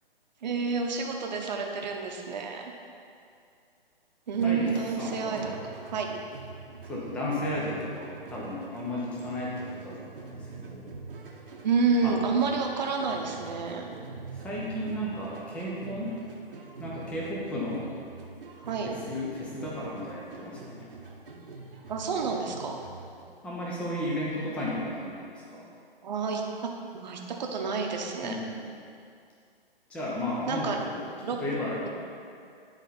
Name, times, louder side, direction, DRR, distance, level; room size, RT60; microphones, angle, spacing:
voice 1, 0.4-2.7 4.3-5.5 5.9-6.1 11.6-14.0 18.6-18.9 21.9-22.8 26.0-28.4 30.5-30.8 31.2-31.4, right 5 dB, 45° right, 2 dB, 0.9 m, -29 dB
sound 1, 4.3-23.3, right 4 dB, 65° right, 1.0 m, -45 dB
voice 2, 4.4-5.6 6.8-10.9 12.0-12.2 14.3-16.2 16.8-17.9 18.8-20.9 23.4-25.6 28.2-28.6 29.9-31.0 31.3-31.9, left 1 dB, 5° left, -5 dB, 0.6 m, -34 dB
9.8 x 4.0 x 4.1 m, 2.4 s
figure-of-eight pair, 135°, 29 cm